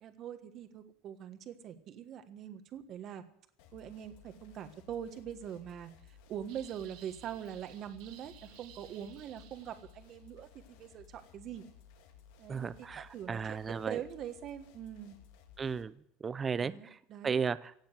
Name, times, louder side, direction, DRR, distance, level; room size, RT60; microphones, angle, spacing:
voice 1, 0.0-3.2 3.7-11.6 12.4-15.1 16.6-17.4, right 9 dB, 35° right, 9 dB, 1.4 m, -43 dB
sound 1, 3.6-15.8, left 7 dB, 75° left, 2.2 m, -59 dB
sound 2, 6.5-10.2, right 11 dB, 55° right, 1.5 m, -57 dB
voice 2, 12.5-14.0 15.6-17.0 17.2-17.7, right 6 dB, 15° right, 16 dB, 0.5 m, -35 dB
16.5 x 7.2 x 9.5 m, 0.68 s
cardioid pair, 170°, 0 cm